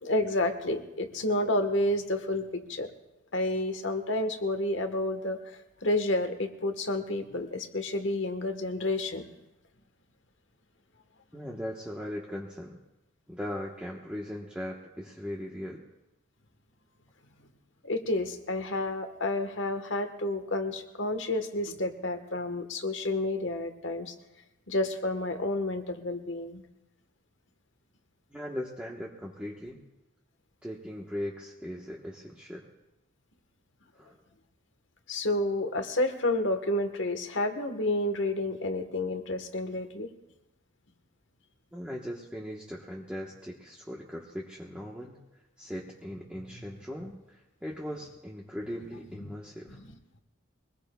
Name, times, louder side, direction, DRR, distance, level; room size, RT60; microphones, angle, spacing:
voice 1, 0.0-2.9 3.3-5.4 5.8-9.2 17.8-24.1 24.7-26.6 35.1-40.1 49.2-49.3 49.7-49.8, left 1 dB, 60° left, 7 dB, 1.3 m, -30 dB
voice 2, 11.3-12.8 13.3-15.8 28.3-29.8 30.6-32.7 34.0-34.2 41.7-45.2 45.6-49.8, equal, 5° right, -3 dB, 1.1 m, -39 dB
24.0 x 20.0 x 2.3 m, 0.97 s
head